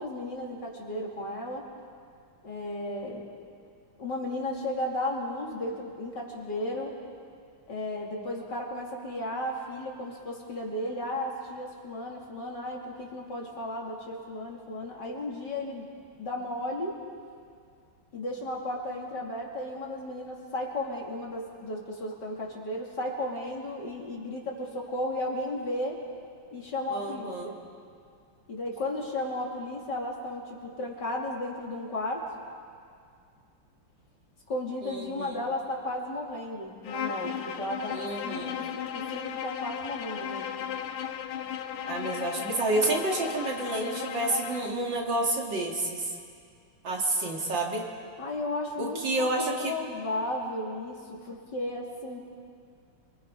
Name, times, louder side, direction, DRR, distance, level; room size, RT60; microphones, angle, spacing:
voice 1, 0.0-1.7 2.4-3.3 4.0-7.0 7.7-15.9 16.2-16.9 18.1-26.0 26.5-27.6 28.5-32.2 34.5-40.6 48.2-49.3 49.6-52.2, left 1 dB, 50° left, -2 dB, 3.4 m, -34 dB
voice 2, 26.9-27.5 34.8-35.4 37.9-38.6 41.9-46.2 46.8-47.9 48.8-49.8, right 2 dB, 55° right, -1 dB, 3.0 m, -29 dB
Bowed string instrument, 36.8-44.8, left 9 dB, 80° left, 1.7 m, -36 dB
28.0 x 23.5 x 5.5 m, 2.3 s
omnidirectional pair, 2.4 m